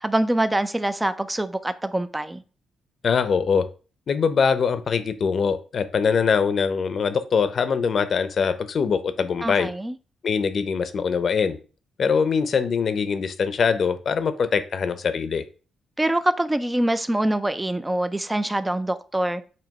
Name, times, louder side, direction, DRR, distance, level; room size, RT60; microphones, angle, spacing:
voice 1, 0.0-2.4 9.4-10.0 16.0-19.4, right 1 dB, 10° right, 0.4 m, -24 dB
voice 2, 3.0-3.6 4.1-9.7 10.2-11.6 12.0-15.4, left 6 dB, 45° left, 0.7 m, -23 dB
7.6 x 2.9 x 5.3 m
cardioid pair, 140°, 0 cm